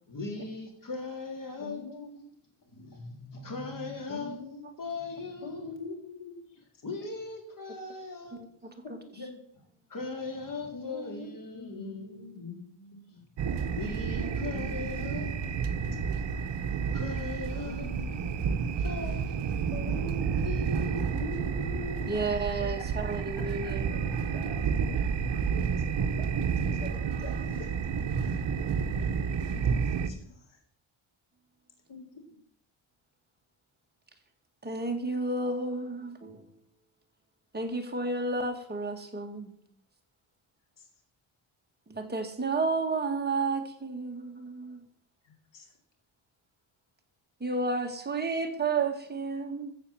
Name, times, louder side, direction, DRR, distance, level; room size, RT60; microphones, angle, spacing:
voice 1, 0.1-1.8 2.7-4.4 4.8-5.7 6.8-8.4 9.9-12.2 13.8-15.3 16.9-17.9 18.8-19.4 20.4-21.1, left 3 dB, 40° left, 3.9 m, -38 dB
voice 2, 1.6-2.2 4.1-4.7 5.4-6.4 9.1-9.4 10.7-11.3 11.5-13.2 14.5-15.7 17.7-18.3 19.7-20.3 21.2-22.4 22.8-22.9 23.3-24.8 25.5-25.7 26.2-27.7 30.0-30.6 31.9-32.0 40.8-40.9 45.2-45.7, left 3 dB, 60° left, 3.9 m, -43 dB
sound 1, 13.4-30.1, right 6 dB, 55° right, 1.2 m, -30 dB
voice 3, 22.1-24.0 34.6-36.5 37.5-39.5 41.9-44.8 47.4-49.7, right 3 dB, 20° right, 2.1 m, -31 dB
15.0 x 7.1 x 7.3 m
wide cardioid pair, 145°, 50 cm